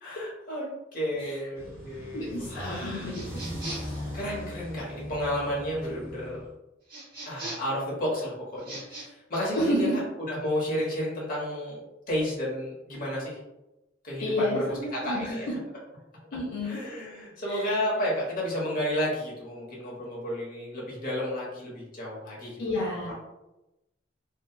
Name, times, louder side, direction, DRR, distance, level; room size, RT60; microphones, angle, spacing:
voice 1, 0.0-3.4 4.1-6.4 7.2-10.0 10.3-11.8 12.1-13.4 14.0-15.6 16.6-22.8, equal, 45° left, -5 dB, 0.9 m, -32 dB
sound 1, 1.6-6.5, left 1 dB, 15° right, 0.7 m, -39 dB
voice 2, 2.1-3.3 3.8-3.9 9.6-9.9 14.2-15.3 16.3-16.8 17.5-17.7 22.6-23.1, left 1 dB, 70° left, -6 dB, 0.6 m, -30 dB
sound 2, 3.1-4.0 6.9-7.8 8.6-9.1, right 2 dB, 45° right, 1.0 m, -39 dB
2.6 x 2.2 x 2.2 m, 0.95 s
head